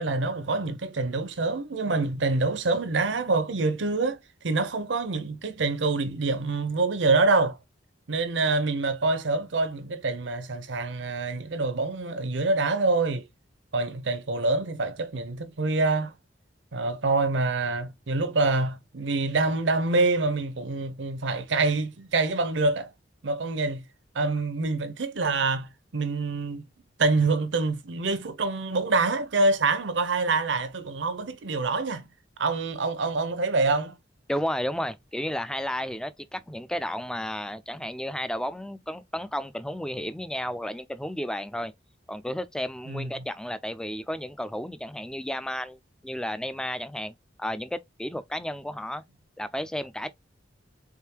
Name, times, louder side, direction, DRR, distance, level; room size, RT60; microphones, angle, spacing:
voice 1, 0.0-4.2 4.4-7.6 8.1-13.3 13.7-16.1 16.7-22.9 23.2-23.8 24.1-25.7 25.9-26.6 27.0-32.1 32.4-33.9 42.9-43.1, right 3 dB, 75° right, 0.7 m, -26 dB
voice 2, 34.3-41.7 42.1-49.0 49.4-50.1, equal, 5° left, 0.3 m, -33 dB
3.6 x 3.6 x 2.8 m
head